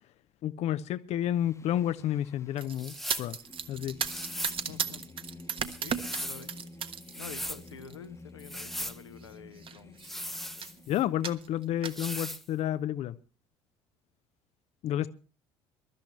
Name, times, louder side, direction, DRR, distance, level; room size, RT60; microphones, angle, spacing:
voice 1, 0.4-3.4 3.7-4.0 10.9-13.2 14.8-15.1, left 11 dB, 50° left, 0.7 m, -30 dB
Singing, 1.3-11.7, left 3 dB, 20° left, 1.2 m, -51 dB
sound 1, 2.6-7.1 7.5-8.0 8.8-8.9 9.2-9.3 9.6-10.1 10.6-10.8 11.2-12.1, right 7 dB, 40° right, 1.3 m, -36 dB
sound 2, 2.8-3.3 4.0-4.6 5.6-6.5 7.0-7.6 8.4-9.0 10.0-11.0 11.8-12.4, equal, ahead, 0.9 m, -38 dB
voice 2, 4.7-5.0 5.8-6.7 7.1-10.3, left 7 dB, 85° left, 1.1 m, -48 dB
22.5 x 13.0 x 3.2 m
figure-of-eight pair, 60°, 14 cm